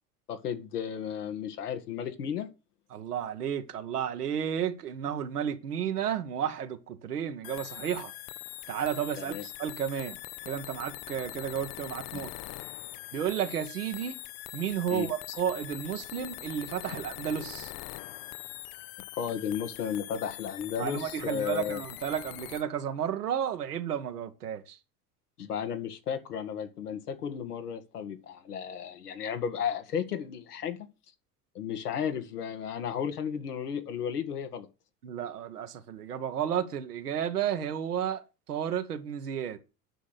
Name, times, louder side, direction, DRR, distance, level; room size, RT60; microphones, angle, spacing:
voice 1, 0.3-2.5 9.2-9.4 14.9-15.1 19.1-21.8 25.4-30.9 31.6-34.7, left 8 dB, 85° left, 1.8 m, -34 dB
voice 2, 2.9-8.1 8.7-10.2 10.4-12.3 13.1-14.2 14.5-17.7 20.8-24.8 35.0-39.6, right 9 dB, 85° right, 1.6 m, -32 dB
sound 1, 7.4-22.6, left 18 dB, 50° left, 0.7 m, -43 dB
10.0 x 6.4 x 8.3 m
hypercardioid pair, 75°, 45 cm